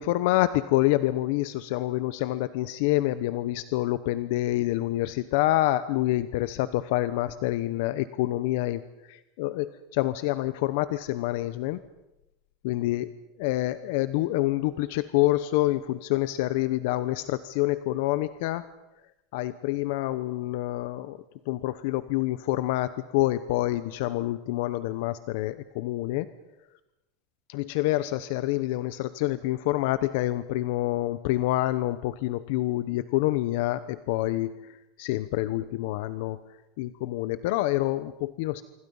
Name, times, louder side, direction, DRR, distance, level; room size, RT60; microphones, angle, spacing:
voice 1, 0.0-8.8 9.1-11.8 12.6-13.0 13.4-18.6 19.3-21.2 21.5-26.3 27.5-34.5 35.0-36.4 36.8-38.6, left 16 dB, 65° left, 14 dB, 0.9 m, -27 dB
26.5 x 24.5 x 5.6 m, 0.93 s
supercardioid pair, 160°, 0 cm